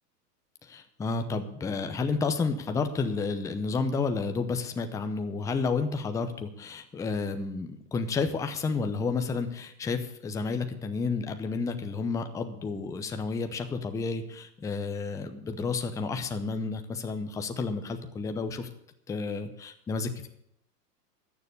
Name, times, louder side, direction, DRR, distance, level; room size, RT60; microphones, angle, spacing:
voice 1, 0.6-18.7 19.1-20.3, left 4 dB, 5° left, 7 dB, 0.6 m, -31 dB
13.0 x 7.1 x 8.4 m, 0.75 s
hypercardioid pair, 120°, 50 cm